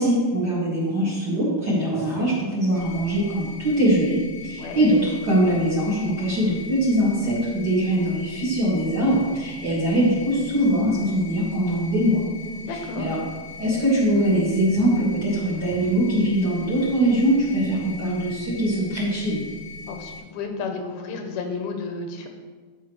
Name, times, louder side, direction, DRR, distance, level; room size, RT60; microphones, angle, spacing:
voice 1, 0.0-12.2 13.0-13.2 13.6-19.4, right 1 dB, 35° right, -7 dB, 2.0 m, -22 dB
sound 1, 2.7-20.2, left 3 dB, 55° right, 4.4 m, -40 dB
voice 2, 12.5-13.1 19.9-22.3, left 4 dB, 80° left, 4 dB, 2.6 m, -32 dB
15.5 x 5.5 x 3.2 m, 1.4 s
omnidirectional pair, 4.4 m